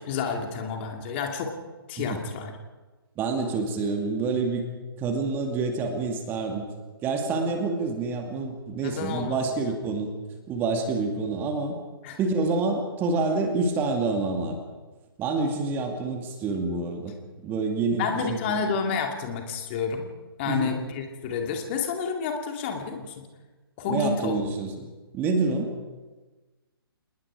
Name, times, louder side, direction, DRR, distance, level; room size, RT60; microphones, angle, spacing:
voice 1, 0.0-1.5 1.9-2.5 8.8-9.6 12.0-12.2 17.9-20.1 20.4-23.3 23.8-24.4, left 5 dB, 30° left, 3 dB, 2.4 m, -30 dB
voice 2, 3.2-4.7 5.0-6.6 7.0-10.1 10.5-11.8 12.2-14.6 15.2-18.2 20.5-20.7 23.9-24.9 25.1-25.7, right 3 dB, 15° right, 4 dB, 2.5 m, -27 dB
28.5 x 20.0 x 5.0 m, 1.3 s
figure-of-eight pair, 135°, 13 cm